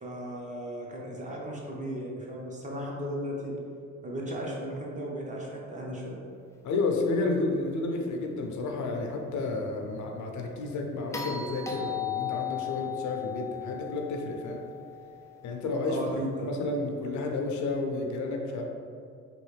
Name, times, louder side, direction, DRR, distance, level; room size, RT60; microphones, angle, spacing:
voice 1, 0.0-3.6 4.0-6.2 15.9-16.6, equal, 25° right, -3 dB, 0.8 m, -35 dB
voice 2, 6.6-14.6 15.4-16.0 16.4-18.6, left 3 dB, 75° left, 2 dB, 0.5 m, -31 dB
sound 1, 11.1-15.4 17.6-17.7, left 9 dB, 10° left, 0.3 m, -36 dB
3.1 x 2.5 x 3.2 m, 2.3 s
cardioid pair, 90°, 30 cm